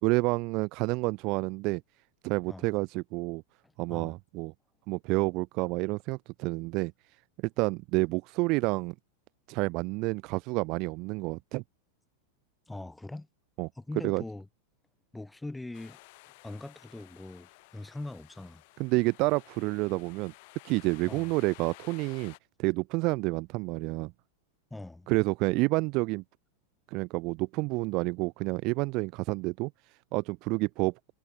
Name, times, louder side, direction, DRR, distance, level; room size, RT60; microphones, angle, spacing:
voice 1, 0.0-1.8 2.2-3.4 3.8-4.5 4.9-6.9 7.6-8.9 9.5-11.6 13.6-13.7 14.0-14.2 18.8-20.3 20.6-24.1 25.1-26.2 26.9-29.7 30.1-30.9, right 25 dB, 40° right, 0.4 m, -29 dB
voice 2, 3.6-4.2 12.7-13.3 13.8-14.5 15.1-16.0 16.4-18.6 21.1-21.3 24.7-25.1, left 2 dB, 5° left, 6.8 m, -42 dB
sound 1, 15.7-22.4, left 25 dB, 50° left, 5.4 m, -54 dB
figure-of-eight pair, 90°, 0 cm